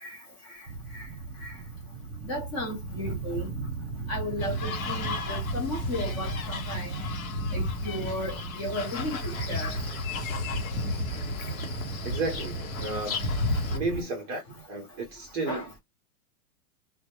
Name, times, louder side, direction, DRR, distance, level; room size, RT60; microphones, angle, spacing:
sound 1, 0.7-14.0, right 3 dB, 45° right, 1.0 m, -37 dB
voice 1, 2.2-3.5 4.1-6.9 7.5-9.7 15.5-15.6, left 1 dB, 25° left, 0.7 m, -34 dB
sound 2, 4.4-13.8, left 3 dB, 65° left, 0.9 m, -33 dB
voice 2, 12.0-13.3 13.7-15.8, right 3 dB, 25° right, 0.5 m, -33 dB
2.2 x 2.0 x 2.8 m
supercardioid pair, 160°, 44 cm